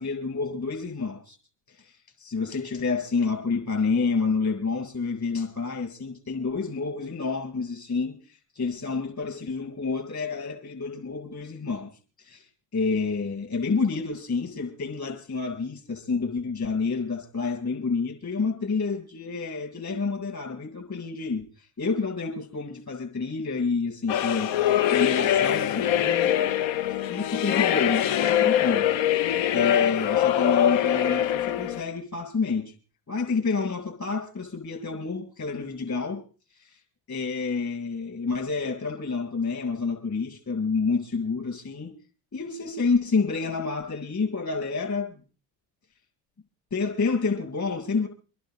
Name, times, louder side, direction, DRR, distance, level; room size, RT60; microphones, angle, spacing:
voice 1, 0.0-1.4 1.7-11.9 12.2-26.3 27.1-32.7 33.1-36.2 36.6-36.8 37.1-41.9 42.3-45.2 46.7-48.1, left 4 dB, 35° left, 2 dB, 8.0 m, -29 dB
sound 1, 24.1-31.8, left 11 dB, 65° left, 0.8 m, -23 dB
26.5 x 11.5 x 4.0 m, 0.36 s
supercardioid pair, 75°, 49 cm